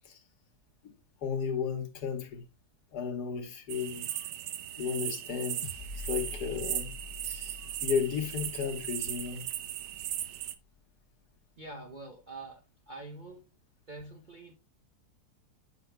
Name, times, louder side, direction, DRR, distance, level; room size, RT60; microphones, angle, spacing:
voice 1, 0.8-2.4 2.9-4.1 4.8-5.6 6.1-6.9 7.2-7.6 7.8-9.5, left 6 dB, 80° left, 1.6 m, -34 dB
sound 1, 3.7-10.6, right 12 dB, 80° right, 1.1 m, -37 dB
sound 2, 5.6-10.2, left 5 dB, 50° left, 0.7 m, -46 dB
voice 2, 11.6-13.5 13.9-14.5, right 2 dB, 40° right, 0.7 m, -45 dB
8.3 x 5.8 x 2.2 m
omnidirectional pair, 1.7 m